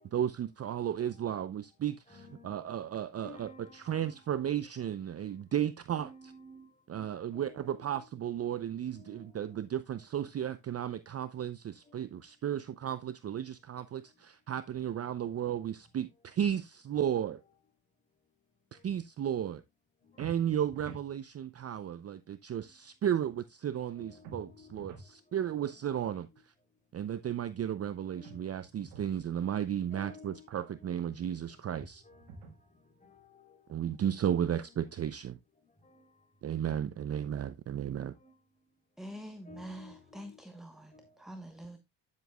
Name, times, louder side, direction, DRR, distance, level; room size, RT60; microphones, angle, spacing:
voice 1, 0.1-2.2 2.4-6.1 6.9-17.4 18.7-19.6 20.2-26.3 26.9-32.0 33.7-35.4 36.4-38.1, right 10 dB, 35° right, 0.5 m, -34 dB
voice 2, 0.8-1.4 2.1-2.9 3.1-4.3 5.9-7.1 7.3-8.2 8.9-9.6 11.9-12.0 23.9-24.8 25.5-25.8 28.1-28.5 29.9-31.3 31.5-31.6 32.0-32.4 33.0-33.8 34.5-34.9 35.8-36.0 38.2-38.3 39.4-40.4 40.9-41.2, left 2 dB, 15° left, 3.3 m, -55 dB
sound 1, 20.2-21.1 24.2-25.1 28.2-29.1 31.7-32.7, right 4 dB, 85° right, 1.6 m, -49 dB
voice 3, 39.0-41.8, right 1 dB, ahead, 1.1 m, -46 dB
9.9 x 7.4 x 2.3 m
supercardioid pair, 70°, 46 cm